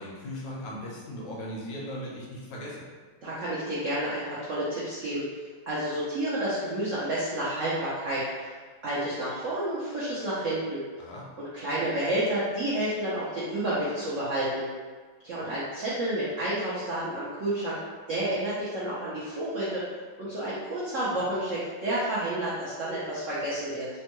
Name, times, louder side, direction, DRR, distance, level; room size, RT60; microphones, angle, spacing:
voice 1, 0.0-2.9 11.0-11.3 15.4-15.5, equal, 70° left, -4 dB, 1.2 m, -38 dB
voice 2, 3.2-5.2 5.7-8.5 8.8-10.8 11.4-14.7 15.2-17.8 18.1-19.8 20.2-23.9, right 1 dB, 85° right, -9 dB, 0.6 m, -30 dB
3.5 x 2.2 x 2.9 m, 1.5 s
omnidirectional pair, 2.2 m